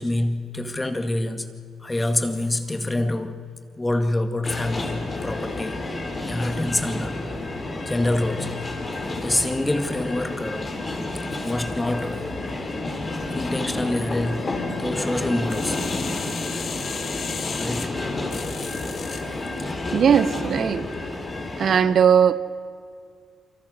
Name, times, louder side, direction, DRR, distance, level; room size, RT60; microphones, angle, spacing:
voice 1, 0.0-1.5 1.8-3.4 3.8-5.9 6.2-7.2 7.9-8.6 9.2-10.8 11.4-12.3 13.3-15.9 17.6-18.0 18.6-18.7, left 1 dB, 15° left, 2.1 m, -26 dB
sound 1, 4.4-21.8, left 2 dB, 30° left, 4.2 m, -30 dB
sound 2, 15.5-19.2 19.8-19.9, left 6 dB, 50° left, 2.2 m, -34 dB
voice 2, 19.9-20.9 21.6-22.3, right 8 dB, 55° right, 0.9 m, -18 dB
28.5 x 24.5 x 6.6 m
cardioid pair, 90°, 0 cm